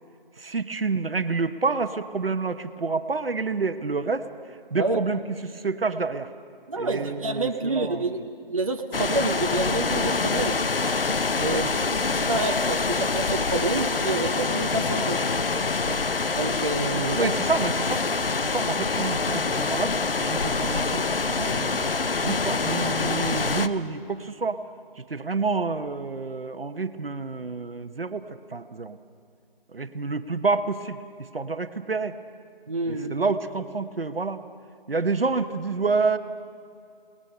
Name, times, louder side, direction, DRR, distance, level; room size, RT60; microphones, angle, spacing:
voice 1, 0.4-4.3 4.7-6.3 6.8-8.1 11.5-11.6 15.9-16.0 16.9-18.1 18.4-21.9 22.2-24.6 25.0-28.2 28.5-29.0 29.7-31.0 31.3-32.1 32.9-34.4 34.9-36.2, right 4 dB, 70° right, 10 dB, 1.1 m, -28 dB
voice 2, 6.7-8.2 8.5-10.6 11.4-15.2 16.4-17.3 32.7-33.3, right 2 dB, 35° right, 3 dB, 0.8 m, -28 dB
sound 1, 8.9-23.7, left 4 dB, 70° left, 0.9 m, -26 dB
27.0 x 20.0 x 5.6 m, 2.3 s
figure-of-eight pair, 165°, 30 cm